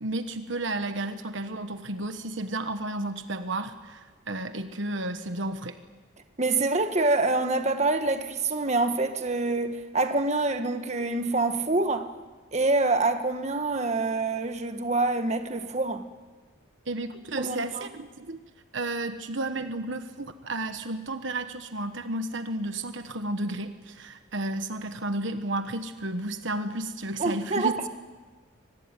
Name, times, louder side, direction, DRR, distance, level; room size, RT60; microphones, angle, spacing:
voice 1, 0.0-5.8 16.9-18.4 18.7-27.9, right 2 dB, 65° right, 1.3 m, -32 dB
voice 2, 6.4-12.1 12.5-16.1 17.4-17.8 27.2-27.9, right 3 dB, 35° right, 1.5 m, -26 dB
24.5 x 20.0 x 9.1 m
head